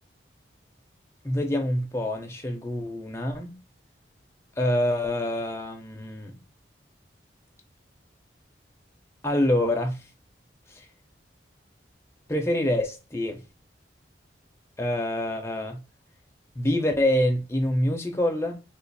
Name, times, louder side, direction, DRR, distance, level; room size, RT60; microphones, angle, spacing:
voice 1, 1.2-3.5 4.6-6.4 9.2-10.0 10.7-10.8 12.3-13.4 14.8-15.8 16.6-18.6, left 1 dB, 15° left, 0.6 m, -26 dB
2.4 x 2.4 x 4.0 m
head